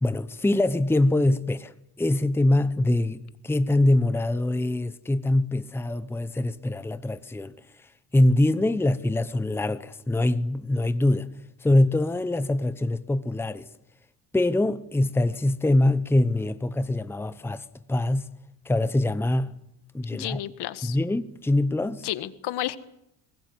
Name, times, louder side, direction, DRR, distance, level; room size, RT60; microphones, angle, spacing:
voice 1, 0.0-7.5 8.1-11.3 11.6-13.7 14.3-18.3 18.6-19.5 19.9-20.4 20.8-22.1, left 1 dB, 5° left, 0.9 m, -24 dB
voice 2, 20.1-21.0 22.0-22.8, left 14 dB, 65° left, 1.7 m, -31 dB
23.5 x 20.0 x 9.6 m
cardioid pair, 120°, 42 cm